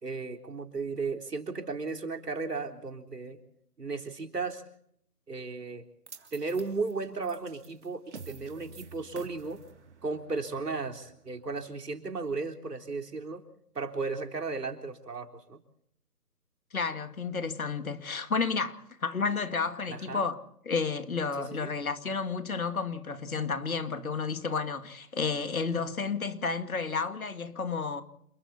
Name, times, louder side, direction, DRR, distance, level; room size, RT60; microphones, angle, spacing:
voice 1, 0.0-3.4 3.8-4.6 5.3-5.8 6.3-9.6 10.0-13.4 13.8-15.6 19.9-20.3 21.4-21.7, right 4 dB, 85° right, 3.8 m, -35 dB
sound 1, 6.1-12.3, right 5 dB, 45° right, 3.1 m, -51 dB
voice 2, 16.7-20.4 20.7-28.0, left 5 dB, 60° left, 2.4 m, -31 dB
28.5 x 21.5 x 4.2 m
hypercardioid pair, 165°, 47 cm